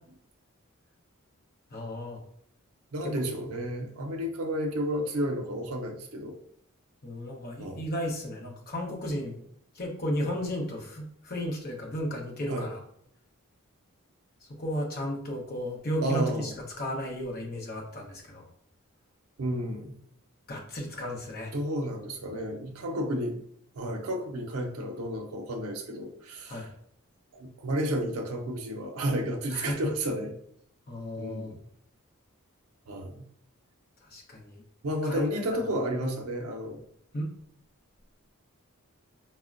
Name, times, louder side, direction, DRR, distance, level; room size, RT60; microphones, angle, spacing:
voice 1, 1.7-2.2 7.0-9.4 9.7-12.8 14.6-18.4 20.5-21.5 26.5-26.7 29.5-29.8 30.9-31.5 34.0-34.6 35.0-35.6 37.1-37.3, equal, 45° left, 0 dB, 0.8 m, -34 dB
voice 2, 2.9-6.4 7.6-7.8 12.5-12.7 16.0-16.5 19.4-20.0 21.5-23.4 23.7-26.7 27.3-30.3 31.2-31.6 32.9-33.2 34.8-36.8, equal, 85° right, 2 dB, 0.5 m, -32 dB
4.2 x 2.1 x 2.4 m, 0.67 s
head